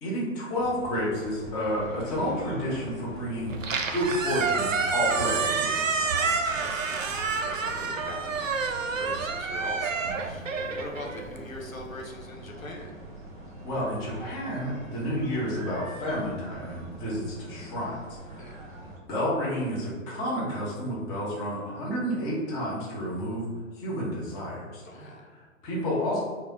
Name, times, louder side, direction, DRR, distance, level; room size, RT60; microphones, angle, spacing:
voice 1, 0.0-3.5 3.9-5.7 10.2-10.3 13.6-18.0 18.3-18.7 19.1-23.5 23.8-26.2, equal, 10° left, -6 dB, 0.6 m, -30 dB
sound 1, 0.5-19.0, right 1 dB, 35° right, 1.0 m, -43 dB
Squeak, 3.5-11.7, right 5 dB, 75° right, 0.5 m, -29 dB
voice 2, 6.0-12.9 18.4-18.5 24.8-25.2, left 2 dB, 80° left, 0 dB, 1.0 m, -42 dB
4.7 x 2.0 x 4.0 m, 1.5 s
figure-of-eight pair, 120°, 40 cm